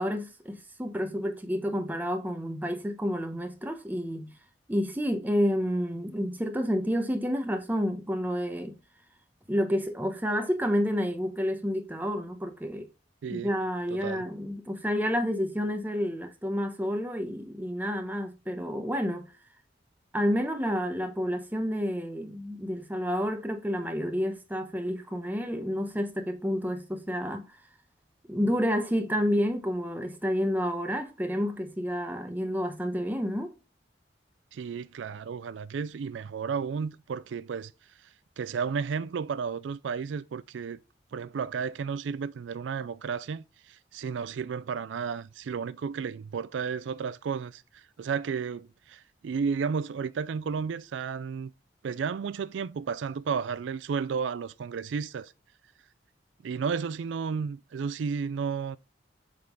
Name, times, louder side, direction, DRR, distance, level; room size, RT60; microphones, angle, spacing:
voice 1, 0.0-4.3 4.7-8.8 9.5-12.9 13.3-19.3 20.1-27.5 28.3-33.5, equal, 10° right, 0.9 m, -29 dB
voice 2, 13.9-14.2 34.5-37.7 38.4-40.8 41.1-51.5 51.8-55.3 56.4-58.8, right 6 dB, 90° right, 0.4 m, -33 dB
7.6 x 3.7 x 3.8 m
head